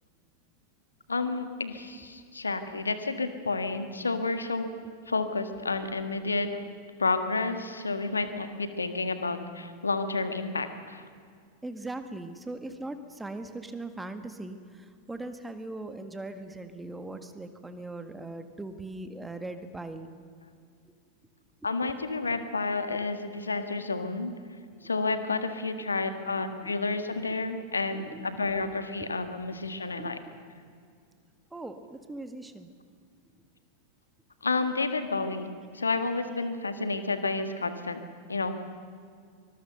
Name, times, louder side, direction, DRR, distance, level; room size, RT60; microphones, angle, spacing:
voice 1, 1.1-6.6 7.0-11.0 21.6-24.3 24.8-30.2 34.4-38.0 38.3-38.6, left 3 dB, 75° left, 9 dB, 1.7 m, -30 dB
voice 2, 11.6-20.1 22.9-23.0 26.6-26.7 28.0-28.3 29.0-29.1 30.0-30.4 31.5-32.7, right 2 dB, 10° right, 8 dB, 1.7 m, -40 dB
24.5 x 21.0 x 6.7 m, 2.2 s
figure-of-eight pair, 90°, 0 cm